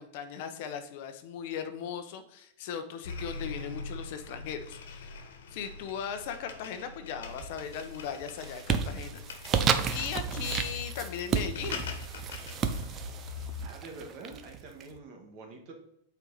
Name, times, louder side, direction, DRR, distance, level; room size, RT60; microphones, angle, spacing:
voice 1, 0.0-5.2 5.5-9.6 9.9-11.8, left 8 dB, 50° left, 8 dB, 1.0 m, -38 dB
sound 1, 3.0-13.7, left 4 dB, 85° left, 1.4 m, -42 dB
sound 2, 7.3-7.8 8.2-14.8, right 7 dB, 20° right, 0.6 m, -32 dB
voice 2, 13.6-15.7, right 3 dB, 40° right, 2 dB, 1.7 m, -46 dB
8.8 x 4.6 x 4.1 m, 0.74 s
supercardioid pair, 165°, 0 cm